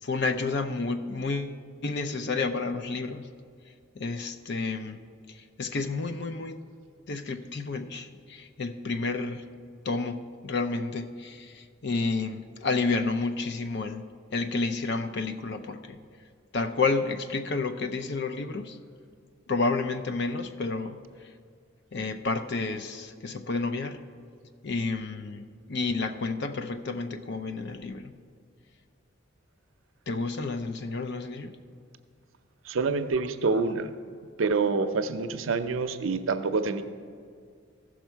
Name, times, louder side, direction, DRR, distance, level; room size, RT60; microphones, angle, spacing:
voice 1, 0.0-1.6 1.8-3.2 4.0-5.0 5.3-6.6 7.1-9.5 9.8-16.0 16.5-18.8 19.5-21.0 21.9-24.0 24.6-28.1 30.1-31.6, left 3 dB, 55° left, 9 dB, 0.5 m, -30 dB
voice 2, 32.7-33.9 34.4-36.8, right 4 dB, 85° right, 9 dB, 0.6 m, -27 dB
15.0 x 6.2 x 4.5 m, 2.1 s
head